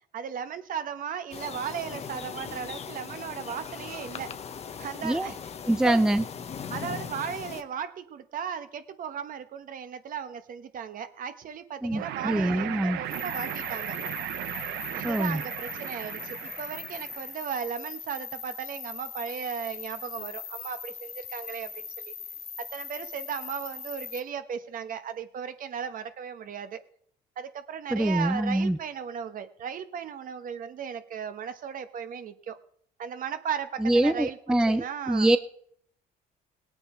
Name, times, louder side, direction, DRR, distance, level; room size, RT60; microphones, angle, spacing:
voice 1, 0.1-4.3 4.8-5.4 5.8-6.0 6.7-14.0 14.9-22.1 22.7-26.8 27.4-32.6 33.0-34.4 34.7-35.3, right 8 dB, 55° right, 9 dB, 1.2 m, -36 dB
sound 1, 1.3-7.6, left 7 dB, 40° left, 0.9 m, -39 dB
voice 2, 5.7-6.2 11.8-13.0 15.0-15.4 27.9-28.8 33.8-35.4, right 1 dB, 5° right, 11 dB, 0.5 m, -24 dB
sound 2, 11.9-17.4, right 13 dB, 85° right, 0.8 m, -36 dB
sound 3, 13.1-24.2, left 6 dB, 60° left, 2.3 m, -41 dB
18.5 x 8.7 x 4.5 m, 0.64 s
cardioid pair, 110°, 17 cm